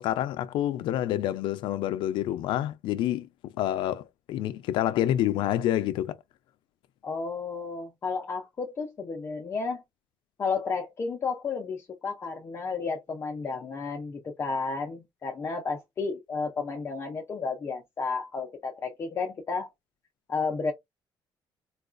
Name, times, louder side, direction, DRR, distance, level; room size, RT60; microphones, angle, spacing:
voice 1, 0.0-3.3 3.6-6.1, left 12 dB, 80° left, 0.4 m, -28 dB
voice 2, 7.0-9.8 10.4-19.7 20.3-20.7, left 4 dB, 30° left, 0.6 m, -32 dB
3.9 x 2.3 x 2.4 m
cardioid pair, 155°, 8 cm